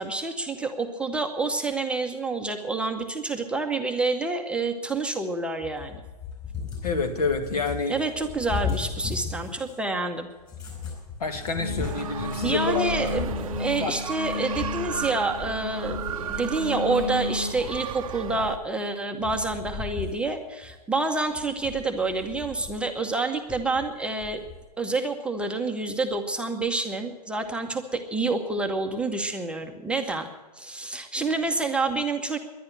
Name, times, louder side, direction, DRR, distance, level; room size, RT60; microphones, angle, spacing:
voice 1, 0.0-6.0 7.9-10.3 12.4-16.0 16.2-24.4 24.8-30.3 30.6-32.4, right 3 dB, 5° right, 3 dB, 0.8 m, -28 dB
Cat, 5.6-9.9 10.4-16.6 16.9-18.8 19.2-20.3 20.6-20.7 21.3-22.9 23.5-24.6, left 6 dB, 15° left, 4.7 m, -37 dB
voice 2, 6.8-7.9 11.2-12.9 13.8-13.9, left 4 dB, 70° left, 6 dB, 2.1 m, -28 dB
sound 1, 11.5-17.5, left 3 dB, 85° left, 3.0 m, -33 dB
sound 2, 11.8-18.6, right 9 dB, 55° right, 0.6 m, -35 dB
11.0 x 10.5 x 9.9 m, 1.3 s
figure-of-eight pair, 120°, 21 cm